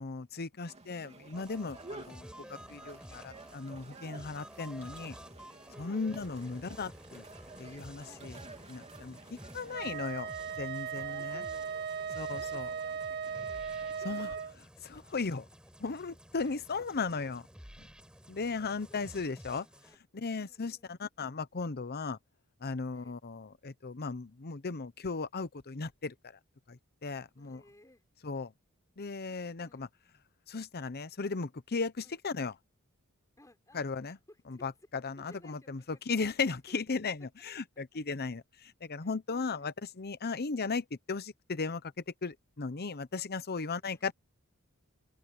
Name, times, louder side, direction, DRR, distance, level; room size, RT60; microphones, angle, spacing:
voice 1, 0.0-2.3 2.7-5.1 5.8-7.2 7.6-8.4 8.7-11.4 12.2-12.7 14.0-14.3 14.8-15.4 15.8-17.4 18.3-19.7 20.1-22.2 22.6-26.4 26.7-27.6 28.2-28.5 29.0-29.9 30.5-32.5 33.7-34.2 34.5-41.9 42.2-44.1, left 4 dB, 45° left, 0.8 m, -36 dB
sound 1, 0.6-10.0, right 2 dB, 30° right, 3.0 m, -52 dB
sound 2, 1.3-20.0, equal, 5° right, 6.1 m, -52 dB
voice 2, 1.8-2.8 5.8-6.7 8.0-8.7 10.9-14.2 15.1-15.2 16.4-17.0 18.5-20.0 20.4-20.9 22.9-23.1 27.4-28.0 29.6-29.9 32.0-32.2 33.4-34.7 35.2-36.0 36.3-36.5 39.0-39.7 43.7-44.1, left 1 dB, 15° left, 4.8 m, -61 dB
Wind instrument woodwind instrument, 9.7-14.5, right 7 dB, 50° right, 1.5 m, -37 dB
open air
head